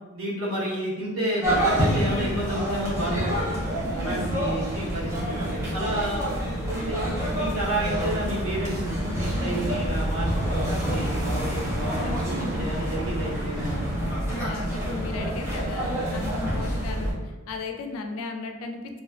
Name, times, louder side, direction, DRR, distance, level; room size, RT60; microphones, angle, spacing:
voice 1, 0.1-3.5 4.0-5.2 5.7-6.4 6.6-13.8, right 1 dB, 80° right, -7 dB, 0.9 m, -30 dB
sound 1, 1.4-17.1, equal, 15° right, 0.6 m, -27 dB
voice 2, 3.8-4.4 9.3-9.7 14.3-19.0, left 3 dB, 85° left, 5 dB, 0.3 m, -36 dB
2.7 x 2.1 x 2.3 m, 1.3 s
head